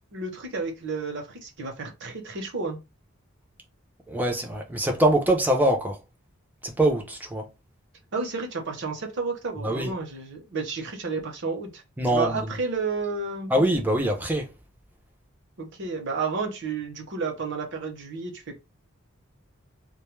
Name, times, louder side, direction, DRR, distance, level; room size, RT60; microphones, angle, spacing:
voice 1, 0.1-2.8 8.1-11.8 12.1-13.5 15.6-18.6, right 4 dB, 60° right, 0.8 m, -31 dB
voice 2, 4.1-6.0 6.6-7.5 9.6-9.9 12.0-12.5 13.5-14.5, right 1 dB, 10° right, 0.6 m, -23 dB
2.2 x 2.2 x 3.0 m
head